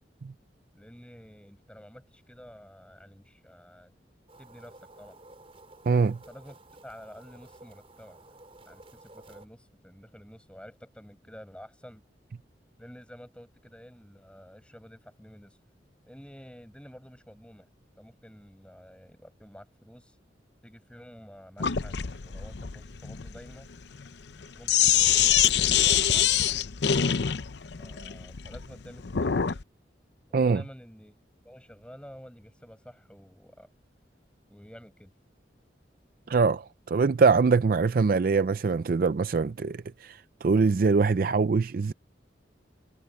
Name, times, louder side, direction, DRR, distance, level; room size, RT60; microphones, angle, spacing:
voice 1, 0.7-3.9 4.4-5.2 6.1-8.2 8.7-12.0 12.8-15.6 16.1-17.7 18.0-20.2 20.6-22.0 22.2-23.7 24.6-26.4 27.8-29.6 30.3-31.2 31.4-33.7 34.5-35.1, equal, 5° left, 7.8 m, -50 dB
sound 1, 4.3-9.5, right 2 dB, 30° right, 5.0 m, -53 dB
voice 2, 5.9-6.2 30.3-30.6 36.3-41.9, right 4 dB, 50° right, 0.4 m, -23 dB
Sink (filling or washing), 21.6-29.6, left 9 dB, 75° left, 0.7 m, -25 dB
head